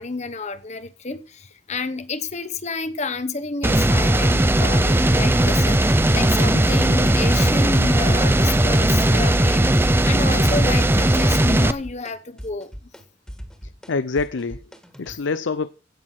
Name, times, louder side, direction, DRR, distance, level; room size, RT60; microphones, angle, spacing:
voice 1, 0.0-12.7, left 3 dB, 35° left, 0.9 m, -30 dB
sound 1, 3.6-11.7, right 1 dB, 10° right, 0.6 m, -17 dB
sound 2, 9.2-9.5 9.7-10.4 10.6-11.2 11.5-15.2, equal, 5° left, 1.7 m, -39 dB
voice 2, 13.6-15.7, left 4 dB, 70° left, 0.6 m, -27 dB
16.5 x 6.3 x 5.9 m
head